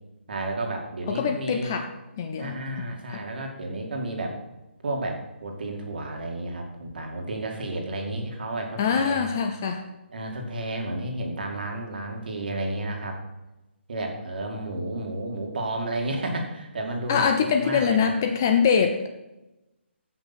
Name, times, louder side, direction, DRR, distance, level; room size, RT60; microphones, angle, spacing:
voice 1, 0.3-1.8 2.4-4.4 4.8-9.3 10.1-13.2 13.9-18.1, right 1 dB, 50° right, 2 dB, 2.1 m, -32 dB
voice 2, 1.1-1.9 2.2-2.5 3.1-3.2 8.8-9.8 17.1-19.1, left 6 dB, 15° left, 5 dB, 0.3 m, -23 dB
14.5 x 5.7 x 4.3 m, 0.99 s
hypercardioid pair, 175°, 7 cm